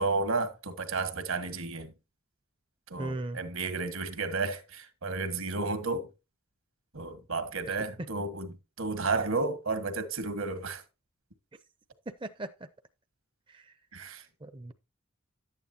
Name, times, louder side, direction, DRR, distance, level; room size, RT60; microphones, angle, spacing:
voice 1, 0.0-1.9 2.9-6.1 6.9-10.8 13.9-14.2, right 3 dB, 70° right, 1.6 m, -32 dB
voice 2, 3.0-3.4 7.7-7.8 12.1-12.7 13.5-13.8 14.4-14.7, right 2 dB, 20° right, 0.5 m, -38 dB
11.5 x 9.1 x 2.8 m
head